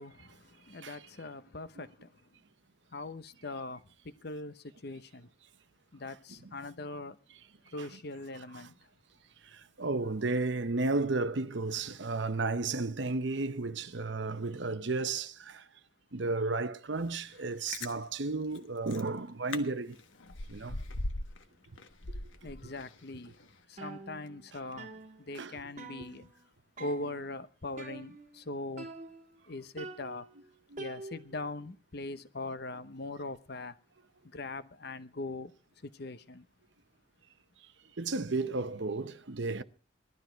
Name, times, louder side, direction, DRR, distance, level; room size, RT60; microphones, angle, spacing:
voice 1, 0.0-2.3 2.9-5.3 5.9-7.2 7.7-8.8 22.4-26.3 26.8-28.9 29.5-30.3 30.8-33.8 34.2-35.5 35.8-36.5, left 2 dB, 55° left, 0.9 m, -41 dB
voice 2, 9.5-15.6 16.1-20.0 20.5-20.7 25.3-25.5 30.7-30.8 38.0-39.6, right 3 dB, 65° right, 0.9 m, -33 dB
Chewing mastication, 17.4-17.9 18.6-18.7 18.9-19.1 19.5-19.6 19.9-21.4 21.8-23.0 23.4-23.5, left 2 dB, 75° left, 1.4 m, -39 dB
sound 1, 23.8-24.5 24.8-26.5 26.8-27.3 27.8-28.4 28.8-29.4 29.8-31.5, right 3 dB, 35° right, 1.6 m, -47 dB
18.0 x 12.5 x 4.6 m
head